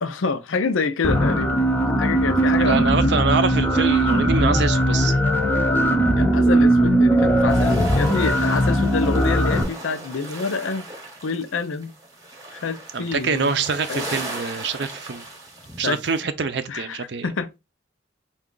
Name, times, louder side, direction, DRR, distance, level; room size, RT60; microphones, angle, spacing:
voice 1, 0.0-1.7 2.0-2.9 6.2-10.9 11.2-11.9 12.5-13.6 13.9-14.1 15.8-16.0 16.7-17.6, left 4 dB, 90° left, 0.5 m, -27 dB
sound 1, 1.0-9.6, right 1 dB, 10° left, 0.5 m, -19 dB
voice 2, 2.6-5.1 12.9-15.2 15.8-17.3, right 4 dB, 60° right, 0.5 m, -25 dB
sound 2, 7.5-16.2, right 2 dB, 20° right, 0.9 m, -37 dB
4.6 x 2.3 x 3.7 m
head